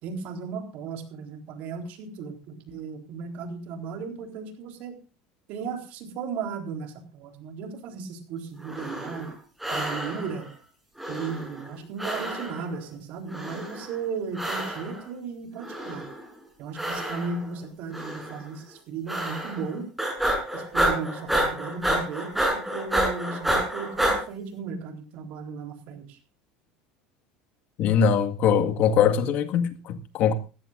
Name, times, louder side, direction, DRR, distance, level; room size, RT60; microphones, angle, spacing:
voice 1, 0.0-5.0 5.5-9.3 9.7-10.5 11.1-16.1 16.6-19.9 20.5-26.2, right 5 dB, 60° right, 3.9 m, -35 dB
sound 1, 8.6-9.3 9.6-10.4 11.0-11.7 12.0-12.7 13.3-13.9 14.3-15.0 15.6-16.2 16.7-17.5 17.9-18.4 19.1-19.7 20.0-24.2, right 1 dB, 5° right, 6.3 m, -29 dB
voice 2, 27.8-30.3, left 7 dB, 55° left, 1.8 m, -22 dB
18.5 x 15.0 x 2.6 m
supercardioid pair, 120°, 3 cm